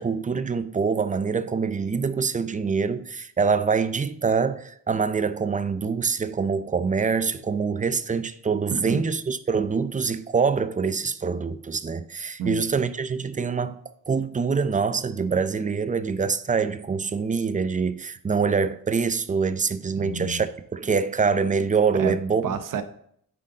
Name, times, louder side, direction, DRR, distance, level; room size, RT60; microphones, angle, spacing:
voice 1, 0.0-13.8 14.1-22.4, right 5 dB, 25° right, 0.5 m, -25 dB
voice 2, 8.7-9.1 12.4-12.8 20.0-20.4 21.9-22.8, right 5 dB, 75° right, 0.8 m, -30 dB
9.4 x 4.0 x 3.8 m
cardioid pair, 85°, 32 cm